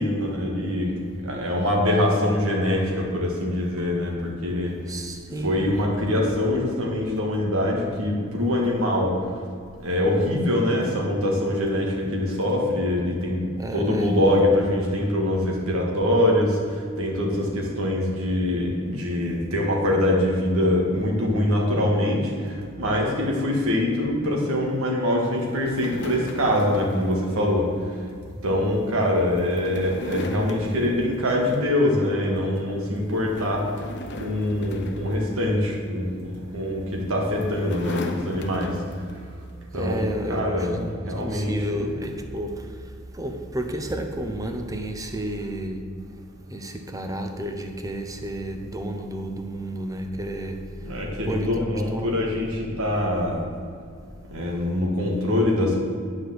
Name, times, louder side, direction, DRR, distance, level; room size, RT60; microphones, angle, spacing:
voice 1, 0.0-0.9 1.2-4.7 5.4-9.2 9.8-13.4 13.7-16.6 17.0-27.7 28.4-33.7 34.2-38.8 39.7-40.8 41.0-41.9 50.8-53.4 54.3-55.8, left 1 dB, 90° right, -1 dB, 1.9 m, -24 dB
voice 2, 4.9-5.8 13.5-14.2 39.7-45.9 46.5-51.0 51.3-52.1, right 1 dB, 15° right, 5 dB, 0.8 m, -32 dB
sound 1, 25.4-31.9 32.3-32.6 33.0-36.0 36.8-39.3, left 1 dB, 55° left, 0.8 m, -38 dB
10.0 x 4.9 x 7.9 m, 2.2 s
head